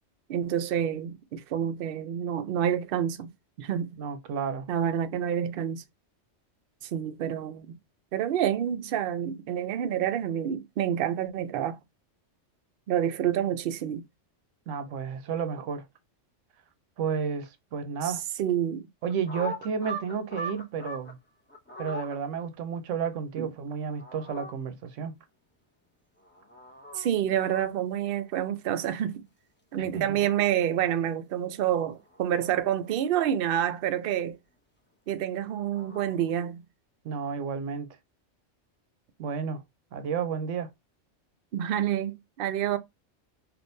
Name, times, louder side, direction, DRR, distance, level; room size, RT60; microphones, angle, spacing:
voice 1, 0.3-3.3 3.6-4.0 4.7-5.8 6.8-7.7 8.1-11.8 12.9-14.0 18.0-18.1 18.4-18.9 23.4-23.5 26.9-29.3 29.7-34.4 35.1-36.6 41.5-42.8, right 10 dB, 60° right, 0.6 m, -28 dB
voice 2, 4.0-4.7 14.7-15.9 17.0-18.2 19.0-21.2 21.8-25.2 29.8-30.2 37.0-37.9 39.2-39.6 39.9-40.7, right 6 dB, 85° right, 1.0 m, -32 dB
sound 1, 19.0-21.1 21.5-22.2 23.8-24.5 26.2-27.1 27.4-27.6 29.7-30.4 32.0-32.9 35.3-36.1, right 1 dB, 15° left, 0.5 m, -41 dB
3.4 x 2.5 x 2.6 m
omnidirectional pair, 1.3 m